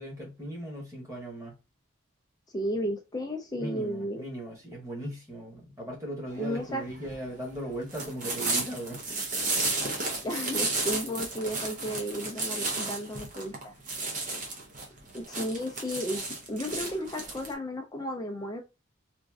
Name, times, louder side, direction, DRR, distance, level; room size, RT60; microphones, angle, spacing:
voice 1, 0.0-1.5 3.6-9.0, right 1 dB, 15° right, 1.3 m, -38 dB
voice 2, 2.5-4.2 6.4-6.8 10.2-13.7 15.1-16.2 16.5-18.6, equal, 20° left, 0.3 m, -33 dB
sound 1, 6.3-17.5, right 3 dB, 35° right, 0.7 m, -33 dB
3.0 x 2.5 x 2.3 m
head